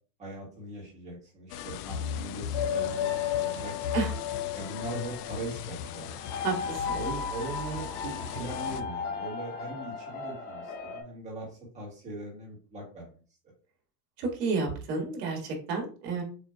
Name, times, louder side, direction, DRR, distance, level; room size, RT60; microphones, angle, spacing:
voice 1, 0.2-3.1 3.4-3.9 4.5-6.2 6.9-13.1, right 2 dB, 15° right, -2 dB, 1.5 m, -40 dB
sound 1, 1.5-8.8, left 7 dB, 70° left, 0.6 m, -38 dB
sound 2, 2.5-11.0, left 7 dB, 25° left, 0.6 m, -34 dB
voice 2, 6.4-7.0 14.2-16.2, right 4 dB, 70° right, 1 dB, 1.9 m, -31 dB
6.7 x 2.6 x 2.3 m, 0.39 s
supercardioid pair, 165°, 49 cm